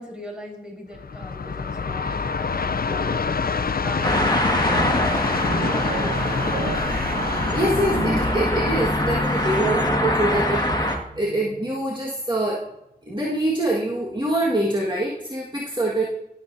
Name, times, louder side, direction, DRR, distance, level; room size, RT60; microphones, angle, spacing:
voice 1, 0.0-3.2 3.8-6.7, equal, 5° right, -3 dB, 4.4 m, -38 dB
Train, 0.9-10.2, left 5 dB, 65° left, 0.5 m, -27 dB
sound 1, 4.0-11.0, left 1 dB, 25° left, 1.6 m, -23 dB
sound 2, 4.3-8.8, right 2 dB, 60° right, 1.1 m, -33 dB
voice 2, 7.5-12.6 13.1-16.0, right 1 dB, 25° right, -4 dB, 1.6 m, -24 dB
19.0 x 7.3 x 2.7 m, 0.86 s
wide cardioid pair, 45°, 17 cm